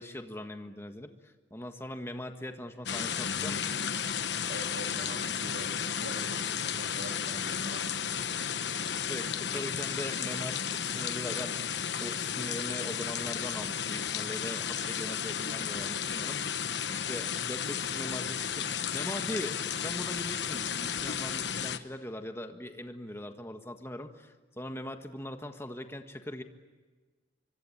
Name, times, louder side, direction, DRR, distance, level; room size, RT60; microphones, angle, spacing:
voice 1, 0.0-3.7 8.9-11.7 12.0-26.4, left 1 dB, 15° left, 6 dB, 1.6 m, -41 dB
sound 1, 2.9-21.8, left 8 dB, 80° left, 1.1 m, -33 dB
voice 2, 4.5-8.5, right 2 dB, 65° right, 3 dB, 3.4 m, -45 dB
25.5 x 24.5 x 8.8 m, 1.3 s
head